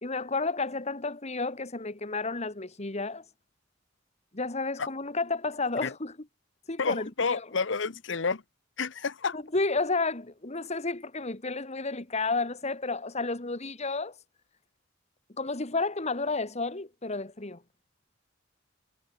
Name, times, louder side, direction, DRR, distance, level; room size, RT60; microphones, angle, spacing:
voice 1, 0.0-3.3 4.3-6.2 6.7-7.5 9.3-14.2 15.4-17.6, left 3 dB, 35° left, 1.8 m, -31 dB
voice 2, 6.8-8.4 8.8-9.4, left 4 dB, 70° left, 0.9 m, -29 dB
head